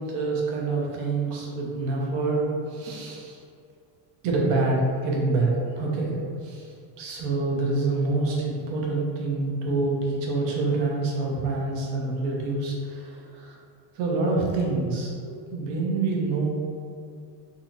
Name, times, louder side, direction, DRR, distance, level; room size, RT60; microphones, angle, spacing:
voice 1, 0.0-3.4 4.2-6.1 6.4-6.7 7.0-13.6 13.9-16.5, right 3 dB, 60° right, -2 dB, 1.0 m, -26 dB
3.9 x 2.9 x 2.5 m, 2.4 s
cardioid pair, 145°, 49 cm